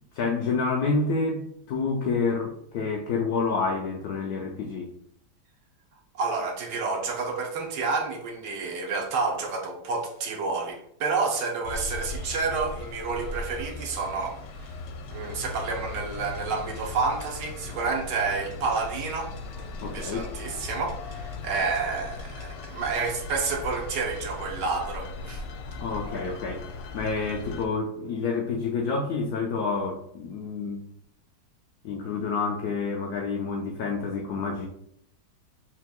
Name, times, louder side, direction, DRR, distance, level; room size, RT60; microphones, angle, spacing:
voice 1, 0.1-4.9 19.8-20.3 25.8-30.8 31.8-34.7, left 4 dB, 90° left, 1 dB, 0.8 m, -28 dB
voice 2, 6.1-14.7 15.1-19.3 19.8-25.4, right 4 dB, 70° right, 2 dB, 1.2 m, -29 dB
sound 1, 11.6-27.7, left 3 dB, 70° left, 1.1 m, -38 dB
4.7 x 3.6 x 2.3 m, 0.74 s
omnidirectional pair, 2.2 m